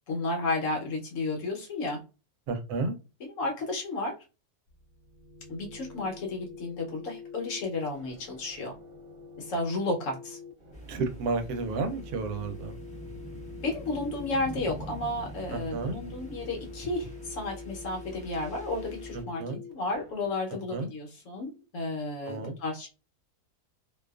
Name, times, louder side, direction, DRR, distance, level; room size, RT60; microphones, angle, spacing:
voice 1, 0.1-2.0 3.2-4.1 5.5-8.7 9.4-10.4 13.6-19.4 19.7-22.9, left 2 dB, 60° left, 1 dB, 1.0 m, -32 dB
voice 2, 2.5-2.9 10.9-12.8 15.5-16.0 19.1-19.6 20.7-20.9 22.3-22.5, right 3 dB, 80° right, 7 dB, 1.1 m, -32 dB
sound 1, 4.7-20.3, left 5 dB, 50° right, 0.7 m, -47 dB
sound 2, 10.7-19.2, right 1 dB, 10° left, 0.5 m, -44 dB
2.6 x 2.3 x 2.2 m, 0.30 s
omnidirectional pair, 1.6 m